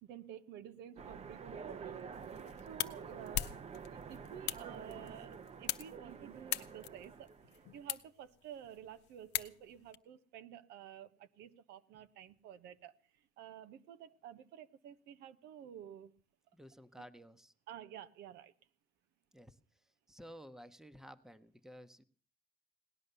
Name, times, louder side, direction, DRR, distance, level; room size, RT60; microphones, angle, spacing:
voice 1, 0.0-2.0 2.7-3.6 3.9-12.9 13.4-16.1 16.9-17.0 17.7-18.5, right 10 dB, 80° right, 11 dB, 0.9 m, -51 dB
Train, 1.0-7.9, right 6 dB, 40° right, 0.8 m, -49 dB
sound 1, 2.1-10.0, left 14 dB, 90° left, 0.8 m, -43 dB
voice 2, 4.8-5.3 16.5-17.5 19.3-19.6 20.1-22.0, equal, 5° right, 12 dB, 1.0 m, -54 dB
18.0 x 10.5 x 6.7 m, 0.42 s
cardioid pair, 110°, 17 cm